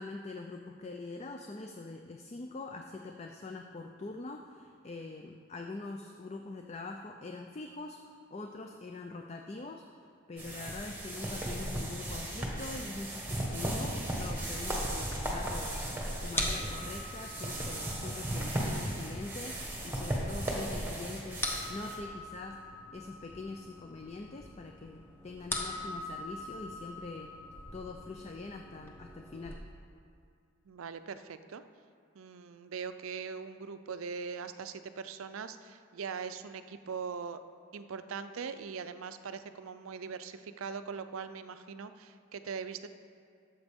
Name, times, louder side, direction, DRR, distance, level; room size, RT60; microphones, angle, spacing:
voice 1, 0.0-9.8 10.3-15.8 16.2-19.5 19.8-22.6 22.9-27.3 27.7-29.6, left 3 dB, 30° left, 3 dB, 0.4 m, -44 dB
sound 1, 10.4-22.0, right 1 dB, 10° right, 1.3 m, -36 dB
sound 2, 14.8-29.6, left 1 dB, 10° left, 0.8 m, -42 dB
voice 2, 30.7-31.6 32.1-37.4 37.7-42.9, right 6 dB, 80° right, 11 dB, 0.5 m, -41 dB
13.0 x 7.5 x 3.6 m, 2.4 s
head